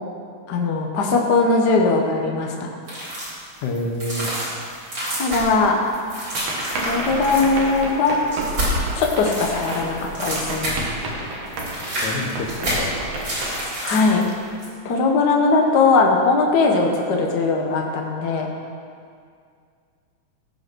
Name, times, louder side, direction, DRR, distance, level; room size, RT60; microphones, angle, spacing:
voice 1, 0.5-2.7 5.2-5.8 6.8-8.2 8.9-10.8 13.8-14.3 14.8-18.5, left 3 dB, 55° left, 1 dB, 1.2 m, -19 dB
sound 1, 2.9-3.4 3.7-11.0 11.3-14.2 14.6-14.7, equal, 40° right, 4.2 m, -28 dB
voice 2, 3.6-4.3 11.6-11.7 12.0-13.1, left 1 dB, 75° left, 2 dB, 2.5 m, -28 dB
sound 2, 6.3-14.8, right 2 dB, 60° right, 2.4 m, -32 dB
16.5 x 5.6 x 6.2 m, 2.2 s
omnidirectional pair, 3.5 m